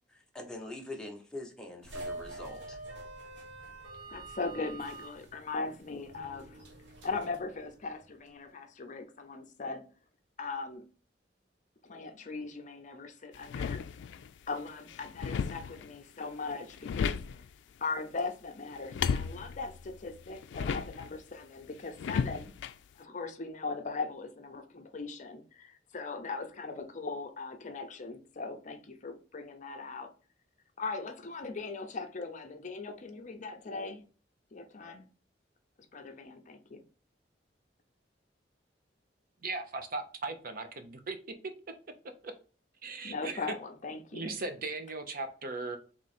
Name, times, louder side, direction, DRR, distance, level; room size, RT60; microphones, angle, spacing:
voice 1, 0.1-2.8, left 2 dB, 5° left, 0.9 m, -44 dB
sound 1, 1.8-8.3, right 2 dB, 90° right, 1.0 m, -46 dB
voice 2, 4.1-6.6 7.0-9.8 10.4-10.8 11.8-13.8 14.5-17.2 17.8-22.5 23.0-30.1 30.8-34.1 34.5-35.0 35.9-36.8 43.0-44.3, left 4 dB, 45° left, 0.6 m, -39 dB
sound 2, 13.3-14.3 14.7-16.0 16.5-17.5 18.7-21.2 22.0-22.7, left 6 dB, 85° left, 0.3 m, -34 dB
voice 3, 39.4-41.2 42.2-42.3 42.8-43.5 44.1-45.8, right 3 dB, 55° right, 0.7 m, -38 dB
3.7 x 3.1 x 4.2 m
head